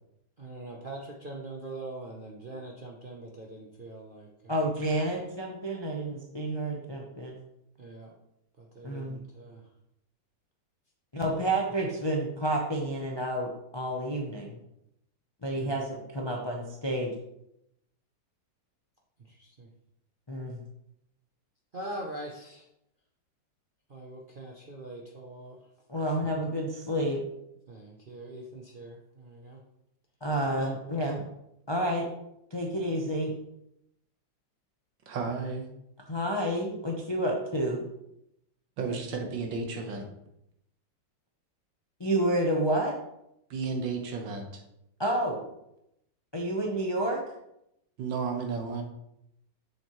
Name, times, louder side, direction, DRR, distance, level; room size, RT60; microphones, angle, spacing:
voice 1, 0.4-4.6 7.8-8.2 8.6-9.7 11.3-11.6 15.6-15.8 19.2-19.7 21.7-22.7 23.9-25.6 27.7-29.6 30.5-30.7, right 2 dB, 55° right, -1 dB, 0.6 m, -43 dB
voice 2, 4.5-7.4 8.8-9.2 11.1-14.6 15.4-17.1 20.3-20.6 25.9-27.2 30.2-31.2 31.7-32.1 32.5-33.3 36.1-37.9 42.0-43.0 45.0-45.4 46.3-47.2, right 1 dB, 40° left, -1 dB, 0.3 m, -29 dB
voice 3, 35.1-35.7 38.8-40.1 43.5-44.6 48.0-48.8, right 4 dB, 80° right, 3 dB, 1.8 m, -33 dB
7.2 x 6.4 x 3.1 m, 0.81 s
omnidirectional pair, 2.0 m